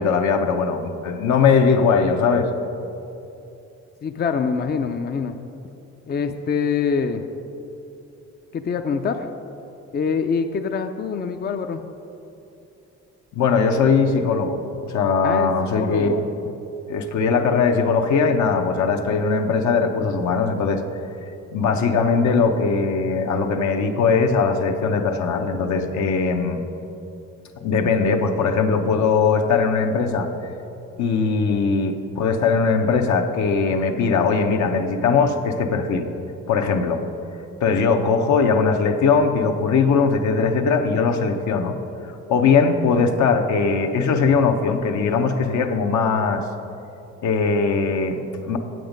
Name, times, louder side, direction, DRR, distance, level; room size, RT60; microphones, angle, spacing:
voice 1, 0.0-2.5 13.3-16.1 16.9-20.8 21.5-26.6 27.6-30.3 31.0-36.1 36.5-37.0 37.6-41.8 42.3-46.4 47.2-48.6, left 5 dB, 70° left, 4 dB, 0.9 m, -20 dB
voice 2, 4.0-5.4 6.1-7.3 8.5-9.3 9.9-11.8 15.2-15.5 15.8-16.2, left 6 dB, 35° left, 7 dB, 0.4 m, -24 dB
8.0 x 7.7 x 5.2 m, 2.8 s
cardioid pair, 90°, 30 cm